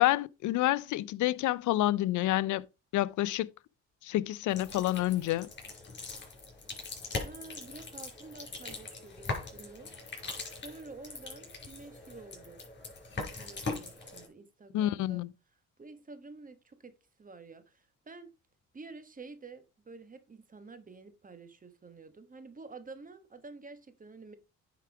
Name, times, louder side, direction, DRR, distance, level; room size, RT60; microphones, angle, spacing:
voice 1, 0.0-2.7 2.9-3.5 4.0-5.5 14.7-15.3, left 15 dB, 75° left, 0.5 m, -28 dB
sound 1, 4.5-14.3, left 3 dB, 35° left, 4.7 m, -41 dB
voice 2, 7.2-9.9 10.6-12.6 13.3-15.2 15.8-16.9 17.2-18.3 18.7-24.4, right 3 dB, 25° right, 1.4 m, -49 dB
9.5 x 4.8 x 4.7 m
cardioid pair, 90°, 30 cm